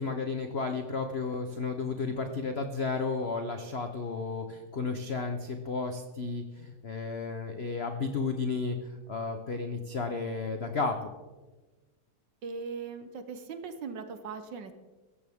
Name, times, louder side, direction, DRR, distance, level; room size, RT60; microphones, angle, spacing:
voice 1, 0.0-11.1, left 4 dB, 70° left, 6 dB, 0.6 m, -33 dB
voice 2, 12.4-14.7, right 5 dB, 65° right, 9 dB, 1.4 m, -39 dB
16.0 x 14.0 x 3.6 m, 1.2 s
omnidirectional pair, 2.4 m